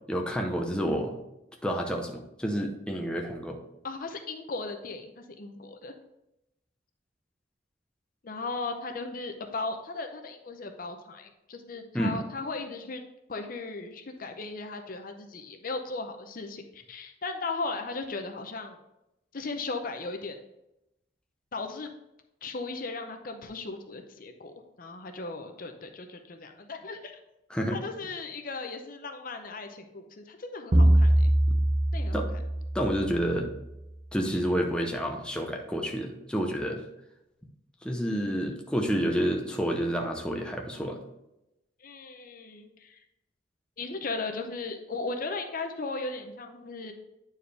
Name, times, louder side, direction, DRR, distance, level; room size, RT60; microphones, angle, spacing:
voice 1, 0.1-1.1 1.6-3.6 11.9-12.2 27.5-27.8 31.5-31.6 32.1-32.3 32.7-33.5 34.1-36.8 37.8-41.0, equal, 5° left, 2 dB, 0.7 m, -29 dB
voice 2, 3.8-5.9 8.2-13.0 13.3-18.8 19.3-20.4 21.5-21.9 22.4-27.2 27.7-31.3 31.9-32.2 41.8-43.0 43.8-46.9, left 3 dB, 50° left, 5 dB, 0.7 m, -37 dB
sound 1, 30.7-33.5, right 1 dB, 35° right, 0.6 m, -23 dB
9.3 x 4.6 x 3.4 m, 0.88 s
head